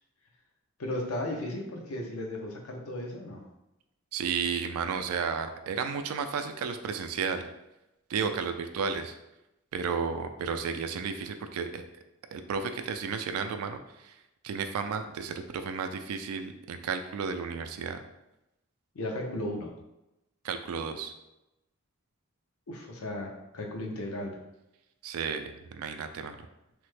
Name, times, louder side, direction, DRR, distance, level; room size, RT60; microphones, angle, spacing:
voice 1, 0.8-3.4 18.9-19.7 22.7-24.4, left 1 dB, 75° left, 1 dB, 0.6 m, -35 dB
voice 2, 4.1-7.4 8.1-9.2 9.7-11.8 12.3-14.2 14.4-18.0 20.4-21.1 25.0-26.4, right 6 dB, 75° right, 7 dB, 0.3 m, -33 dB
3.2 x 2.0 x 3.2 m, 0.91 s
head